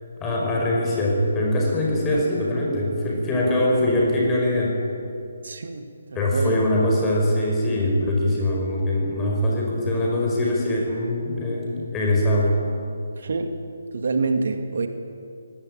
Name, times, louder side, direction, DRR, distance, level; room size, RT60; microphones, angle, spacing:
voice 1, 0.2-4.8 6.1-12.5, left 1 dB, 15° left, -2 dB, 5.3 m, -22 dB
voice 2, 5.4-6.5 13.2-13.5 13.9-14.9, right 3 dB, 60° right, 7 dB, 2.0 m, -26 dB
22.5 x 18.0 x 9.1 m, 2.4 s
figure-of-eight pair, 145°, 0 cm